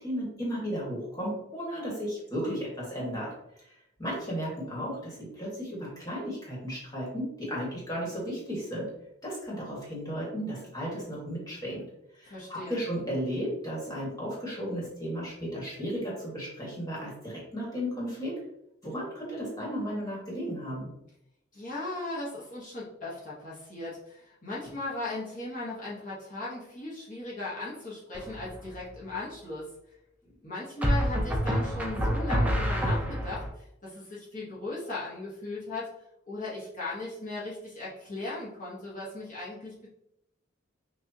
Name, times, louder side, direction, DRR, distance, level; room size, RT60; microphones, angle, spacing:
voice 1, 0.0-3.3 3.6-3.7 4.0-8.9 9.2-11.8 12.1-18.3 18.8-20.9, equal, 20° left, -5 dB, 1.6 m, -34 dB
voice 2, 12.2-12.8 21.5-29.7 30.4-35.9 36.3-39.9, left 2 dB, 40° left, -7 dB, 1.1 m, -37 dB
sound 1, 28.1-28.6 30.8-33.5, equal, 5° right, 0.6 m, -27 dB
5.8 x 2.6 x 2.8 m, 0.81 s
head